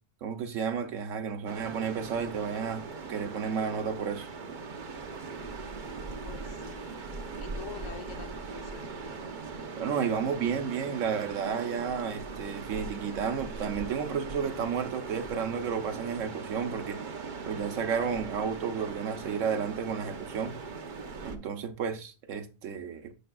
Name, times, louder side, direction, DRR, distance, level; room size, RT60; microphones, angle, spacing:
voice 1, 0.2-4.3 9.8-17.0 17.4-20.6 21.2-23.1, right 6 dB, 85° right, 1.2 m, -32 dB
sound 1, 1.5-21.4, right 4 dB, 45° right, 0.9 m, -40 dB
voice 2, 6.2-6.8 7.4-9.0, left 7 dB, 85° left, 1.3 m, -45 dB
10.5 x 5.1 x 2.3 m
omnidirectional pair, 1.3 m